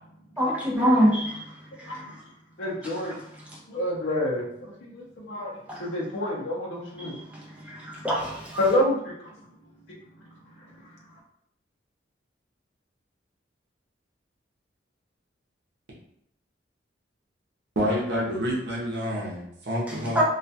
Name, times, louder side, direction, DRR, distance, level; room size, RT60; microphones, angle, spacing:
voice 1, 0.4-1.4 1.8-1.9 5.7-5.8 7.0-7.1 7.7-8.6 19.9-20.2, equal, 10° right, -4 dB, 0.5 m, -24 dB
voice 2, 2.6-3.2 3.7-5.5 5.8-7.1 8.2-9.1, left 1 dB, 70° left, -5 dB, 0.6 m, -28 dB
voice 3, 17.8-20.2, equal, 60° right, -5 dB, 0.7 m, -28 dB
2.3 x 2.2 x 2.6 m, 0.74 s
head